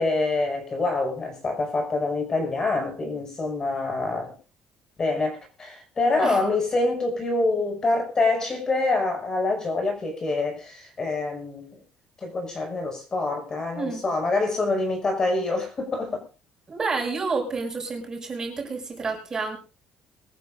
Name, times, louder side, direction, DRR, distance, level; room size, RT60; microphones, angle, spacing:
voice 1, 0.0-4.3 5.0-11.8 12.2-16.2, left 2 dB, 25° left, 5.8 m, -26 dB
voice 2, 16.7-19.6, right 4 dB, 25° right, 6.2 m, -29 dB
23.5 x 13.5 x 2.6 m
cardioid pair, 135°, 2 cm